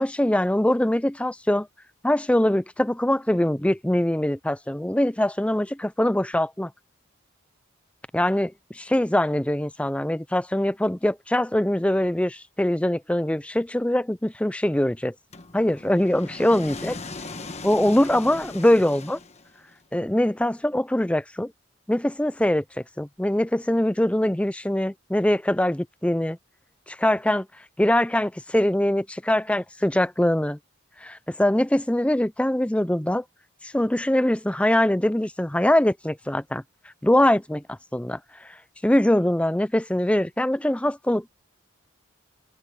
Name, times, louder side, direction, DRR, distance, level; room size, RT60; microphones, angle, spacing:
voice 1, 0.0-1.7 2.0-6.7 8.1-15.1 15.5-17.0 17.6-19.2 19.9-21.5 21.9-22.6 23.0-26.4 26.9-27.5 27.8-30.6 31.0-33.2 33.6-36.6 37.0-38.2 38.4-38.5 38.8-41.3, left 1 dB, 5° left, 0.4 m, -23 dB
sound 1, 15.3-19.7, left 3 dB, 30° left, 1.3 m, -39 dB
open air
head